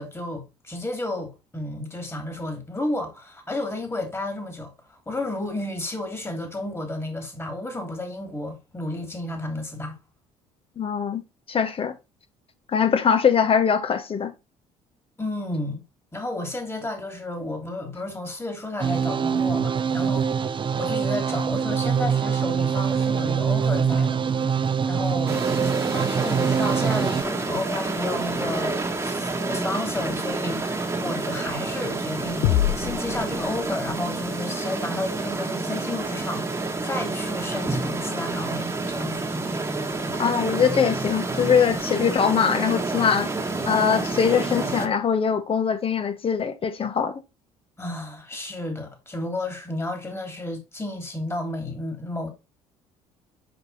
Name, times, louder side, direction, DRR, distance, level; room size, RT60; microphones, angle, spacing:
voice 1, 0.0-10.0 15.2-15.8 16.1-25.4 25.9-39.2 47.8-52.3, left 2 dB, 15° left, 2.9 m, -32 dB
voice 2, 10.8-11.2 11.5-11.9 12.7-14.3 40.2-43.3 43.6-47.2, left 7 dB, 40° left, 1.3 m, -22 dB
sound 1, 18.8-27.2, right 6 dB, 35° right, 0.7 m, -24 dB
sound 2, 25.3-44.9, right 3 dB, 20° right, 1.5 m, -29 dB
sound 3, 32.4-34.2, left 14 dB, 85° left, 0.4 m, -26 dB
5.9 x 5.0 x 4.2 m
supercardioid pair, 70°, 14 cm